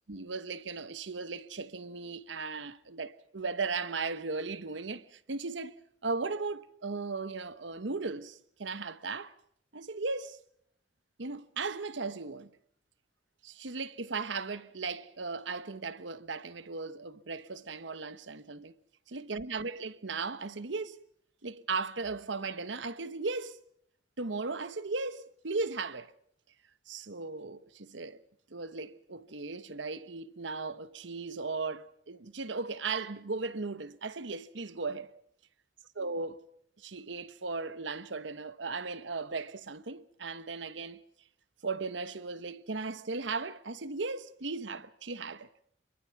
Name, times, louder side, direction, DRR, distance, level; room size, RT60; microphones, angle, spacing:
voice 1, 0.1-9.3 9.7-10.4 11.2-12.5 13.4-18.7 19.1-21.0 21.4-23.6 24.2-26.1 26.9-28.2 28.5-35.1 36.0-36.5 36.8-41.0 41.6-45.5, right 4 dB, 80° right, 1.1 m, -37 dB
27.5 x 22.5 x 5.9 m
head